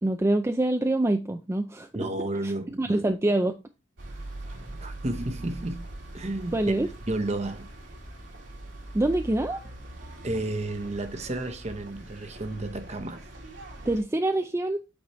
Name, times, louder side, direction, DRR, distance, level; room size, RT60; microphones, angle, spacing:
voice 1, 0.0-1.9 2.4-2.5 2.8-3.5 6.5-6.9 8.9-9.6 13.9-14.8, right 1 dB, 15° right, 0.4 m, -25 dB
voice 2, 1.9-3.0 4.8-5.9 6.1-6.7 7.1-7.7 10.2-13.3, right 2 dB, 35° right, 0.9 m, -32 dB
sound 1, 4.0-14.0, right 1 dB, 85° right, 2.3 m, -42 dB
8.6 x 4.2 x 3.1 m
head